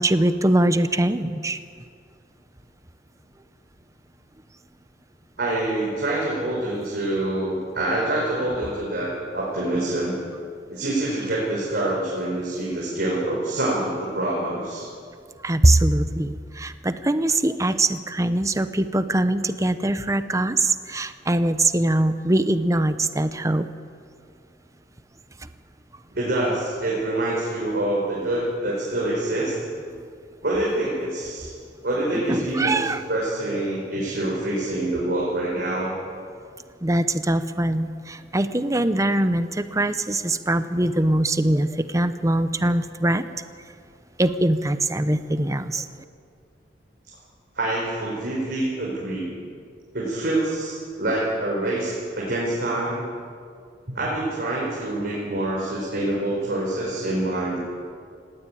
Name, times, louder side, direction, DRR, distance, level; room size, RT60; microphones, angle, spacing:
voice 1, 0.0-1.6 15.4-23.7 25.4-25.5 32.1-33.0 36.8-43.2 44.2-45.9, right 1 dB, 20° right, 11 dB, 0.8 m, -22 dB
voice 2, 5.4-10.2 10.7-14.9 26.1-29.5 30.4-31.5 31.8-35.9 47.6-49.3 49.9-53.1 53.9-57.6, right 1 dB, 60° right, -5 dB, 5.3 m, -26 dB
18.5 x 17.0 x 9.3 m, 2.2 s
head